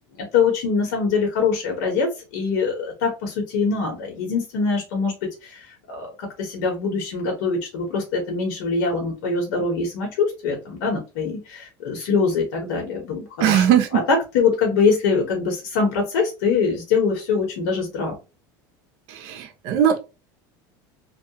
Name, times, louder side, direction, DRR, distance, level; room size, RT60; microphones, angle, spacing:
voice 1, 0.3-2.1 2.3-5.1 5.4-18.1, left 5 dB, 75° left, 0.9 m, -23 dB
voice 2, 13.4-14.0 19.2-20.0, right 10 dB, 60° right, 0.6 m, -19 dB
2.3 x 2.1 x 2.8 m
supercardioid pair, 120°, 11 cm